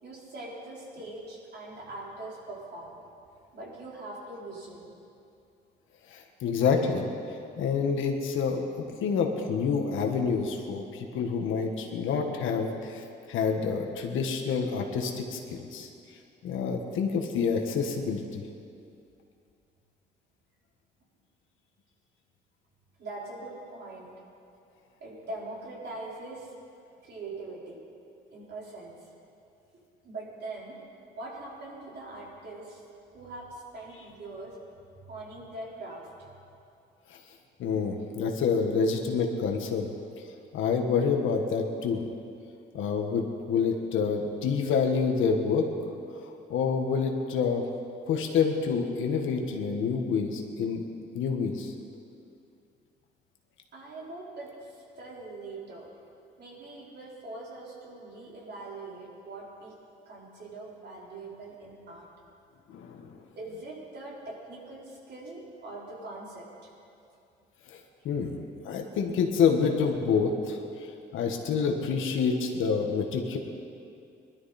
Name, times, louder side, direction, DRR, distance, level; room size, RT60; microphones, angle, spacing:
voice 1, 0.0-3.0 3.5-4.9 23.0-24.1 25.0-26.5 27.0-27.8 28.3-29.1 30.0-30.8 31.2-32.8 33.1-34.6 35.0-36.3 53.7-55.9 56.4-59.8 60.1-62.1 63.3-66.7, right 2 dB, 60° right, -5 dB, 4.5 m, -42 dB
voice 2, 6.1-7.1 7.6-8.7 9.0-13.0 13.3-15.9 16.4-18.5 37.1-37.2 37.6-39.9 40.5-42.0 42.7-45.7 46.5-47.6 48.1-50.8 51.1-51.7 62.7-63.1 67.7-67.8 68.0-68.4 68.6-70.6 71.1-73.4, left 5 dB, 80° left, 3 dB, 1.6 m, -27 dB
20.5 x 12.5 x 4.4 m, 2.5 s
cardioid pair, 90°, 20 cm